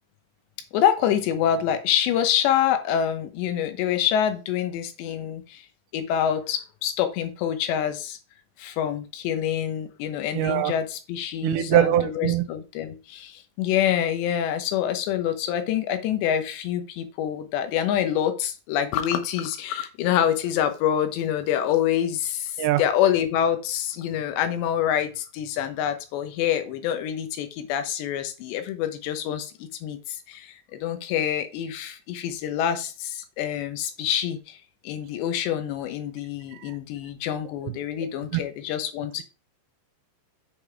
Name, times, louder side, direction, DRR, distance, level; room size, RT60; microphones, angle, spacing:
voice 1, 0.7-5.7 5.9-8.2 8.6-39.2, left 10 dB, 80° left, 3.2 m, -26 dB
voice 2, 10.3-10.7 11.4-12.4 22.6-22.8 36.5-36.7 38.3-38.4, right 11 dB, 85° right, 2.8 m, -22 dB
7.5 x 5.5 x 4.6 m
omnidirectional pair, 5.2 m